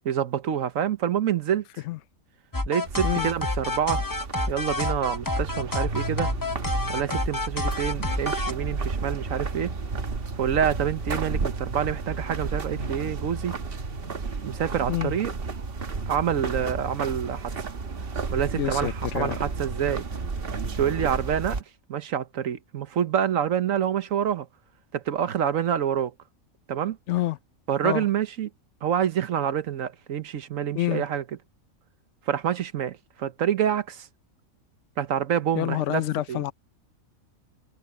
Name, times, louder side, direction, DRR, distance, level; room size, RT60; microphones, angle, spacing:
voice 1, 0.0-1.6 2.7-4.0 4.5-6.3 6.9-9.7 10.4-13.6 14.4-15.3 16.1-17.5 18.3-20.0 20.8-21.6 21.9-24.5 24.9-26.1 26.7-27.0 27.7-28.5 28.8-31.2 32.3-34.1 35.0-36.0 36.3-36.4, right 9 dB, 70° right, 1.3 m, -27 dB
sound 1, 2.5-8.5, left 2 dB, 20° left, 0.7 m, -28 dB
sound 2, 2.8-21.6, right 4 dB, 45° right, 1.4 m, -32 dB
voice 2, 18.5-19.4 27.1-27.4 27.8-28.1 30.7-31.0 35.5-36.5, left 14 dB, 65° left, 0.9 m, -27 dB
omnidirectional pair, 1.5 m